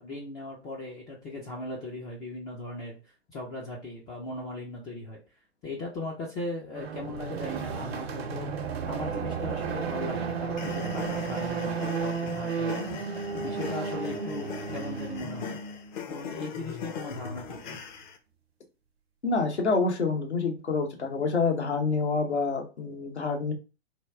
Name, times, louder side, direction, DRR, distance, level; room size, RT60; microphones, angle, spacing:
voice 1, 0.0-5.2 5.6-12.8 13.3-15.6 16.1-17.8, left 2 dB, 10° left, -3 dB, 0.3 m, -38 dB
sound 1, 6.7-15.9, right 5 dB, 65° right, 0.8 m, -33 dB
sound 2, 10.6-18.2, left 6 dB, 45° left, 0.7 m, -40 dB
voice 2, 19.2-23.5, left 4 dB, 85° left, 2 dB, 1.0 m, -27 dB
3.3 x 2.3 x 3.4 m, 0.32 s
figure-of-eight pair, 110°, 33 cm